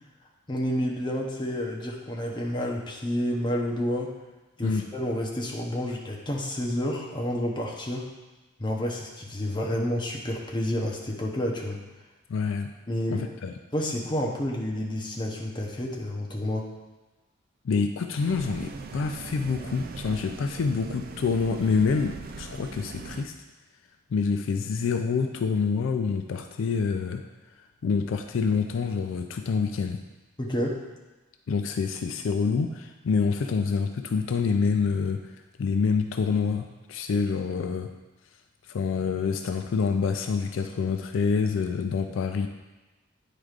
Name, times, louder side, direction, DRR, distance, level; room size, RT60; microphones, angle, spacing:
voice 1, 0.5-4.1 4.6-8.1 8.6-11.8 12.9-13.3 13.7-16.7 30.4-30.8, left 1 dB, 25° left, -1 dB, 0.8 m, -29 dB
voice 2, 12.3-12.7 13.1-13.5 17.6-23.3 24.1-27.2 27.8-30.0 31.5-35.3 35.6-37.9 38.7-42.5, left 5 dB, 70° left, 6 dB, 0.4 m, -27 dB
sound 1, 18.2-23.2, right 4 dB, 45° right, 0.3 m, -40 dB
9.1 x 4.9 x 2.4 m, 1.1 s
head